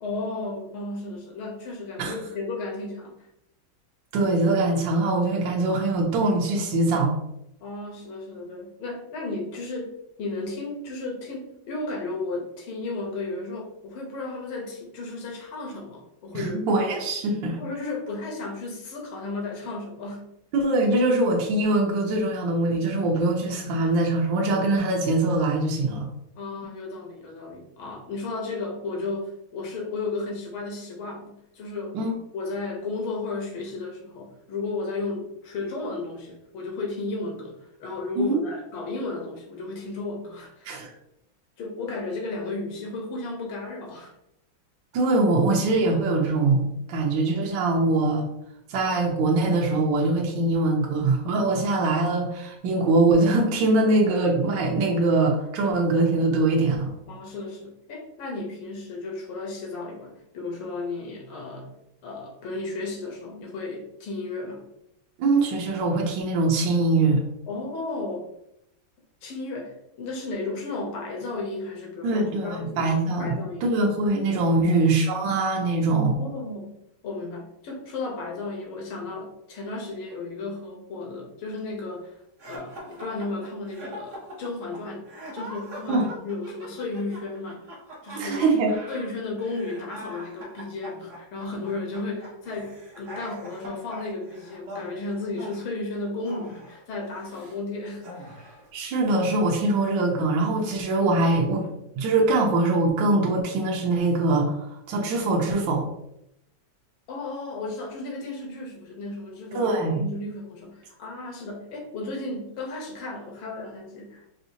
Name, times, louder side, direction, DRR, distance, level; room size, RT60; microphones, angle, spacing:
voice 1, 0.0-3.2 7.6-16.8 17.6-20.3 26.4-32.0 32.3-37.6 37.8-40.8 41.6-44.1 57.1-61.7 62.0-64.6 67.5-68.3 69.2-72.9 73.2-73.7 74.6-74.7 76.2-76.8 77.0-82.2 82.4-85.0 85.3-87.6 88.0-88.4 88.9-98.3 107.1-114.3, left 3 dB, 80° left, 0 dB, 1.8 m, -34 dB
voice 2, 4.1-7.2 16.3-17.6 20.5-26.1 31.9-32.1 38.2-38.4 40.6-40.9 44.9-48.3 48.7-56.9 65.2-67.2 72.0-76.1 85.9-86.1 88.1-88.7 98.7-101.6 102.0-105.8 109.5-110.0, right 2 dB, 70° right, -1 dB, 1.3 m, -23 dB
sound 1, 82.4-97.6 98.0-98.7, equal, 50° right, 1.0 m, -42 dB
4.9 x 2.6 x 2.7 m, 0.81 s
omnidirectional pair, 2.2 m